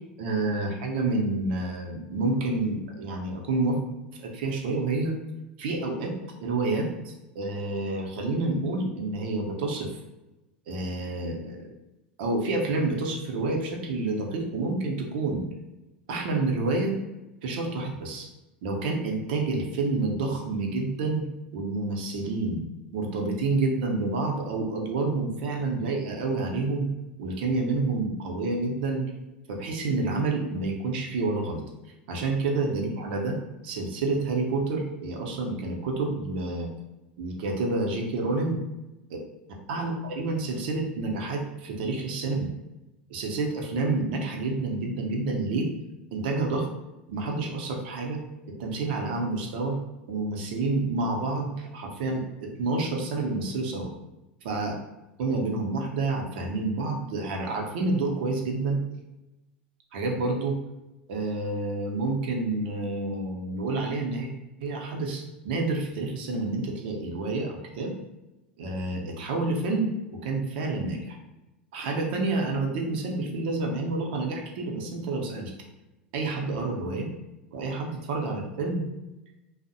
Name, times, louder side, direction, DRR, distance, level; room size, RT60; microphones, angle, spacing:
voice 1, 0.2-3.8 4.1-5.1 5.6-6.1 6.4-9.9 10.7-11.7 12.2-15.5 16.1-16.9 17.4-18.3 18.6-21.2 21.5-22.6 22.9-26.9 27.2-29.0 29.5-31.6 32.1-33.4 33.6-36.7 37.2-38.6 39.1-39.2 39.7-42.5 43.1-45.7 46.1-46.7 47.1-48.2 48.6-49.8 50.1-53.9 54.4-54.7 55.2-58.8 59.9-60.6 61.1-64.3 64.6-67.9 68.6-69.9 70.2-71.2 71.7-75.5 76.1-77.1 77.5-78.8, right 3 dB, 70° right, 1 dB, 0.6 m, -28 dB
2.6 x 2.0 x 2.6 m, 0.99 s
hypercardioid pair, 95°, 6 cm